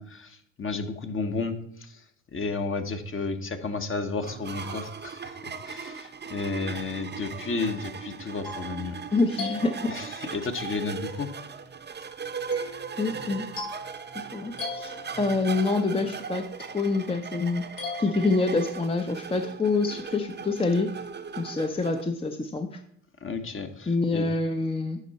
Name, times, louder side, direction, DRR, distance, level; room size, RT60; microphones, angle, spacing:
voice 1, 0.0-2.0 2.3-9.0 9.9-11.3 23.2-24.3, left 4 dB, 35° left, 7 dB, 1.2 m, -32 dB
sound 1, 4.2-22.0, right 6 dB, 30° right, 0.8 m, -38 dB
sound 2, 7.9-10.4 12.5-15.7 17.8-19.0, left 3 dB, 80° left, 3.2 m, -40 dB
voice 2, 9.1-9.7 13.0-13.5 14.1-16.4 16.7-17.6 18.0-20.9 21.4-22.7 23.9-25.0, left 3 dB, 15° left, 5 dB, 0.7 m, -26 dB
10.0 x 5.4 x 4.2 m, 0.71 s
supercardioid pair, 75°, 37 cm